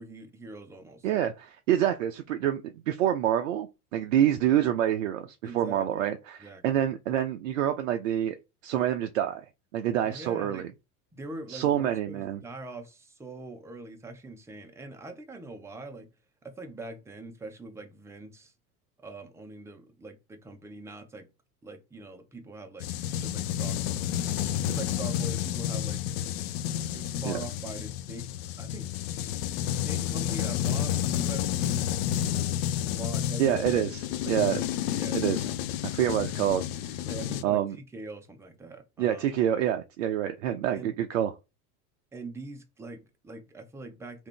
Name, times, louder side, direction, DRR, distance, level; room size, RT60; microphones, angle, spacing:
voice 1, 0.0-1.1 5.4-5.8 6.4-6.6 10.0-10.7 11.1-16.1 16.4-18.5 19.0-21.3 21.6-23.8 24.6-26.0 26.9-29.4 29.6-31.9 32.9-33.9 34.2-34.6 34.9-35.7 37.1-39.3 40.7-40.9 42.1-44.3, right 2 dB, 5° right, 0.7 m, -43 dB
voice 2, 1.0-8.4 8.6-9.4 9.7-10.7 11.5-12.4 27.3-27.4 33.4-34.6 35.1-35.5 35.8-37.0 37.4-37.8 39.0-41.3, right 11 dB, 55° right, 0.5 m, -27 dB
sound 1, 22.8-37.4, left 11 dB, 40° left, 0.5 m, -30 dB
3.6 x 2.6 x 3.3 m
figure-of-eight pair, 80°, 47 cm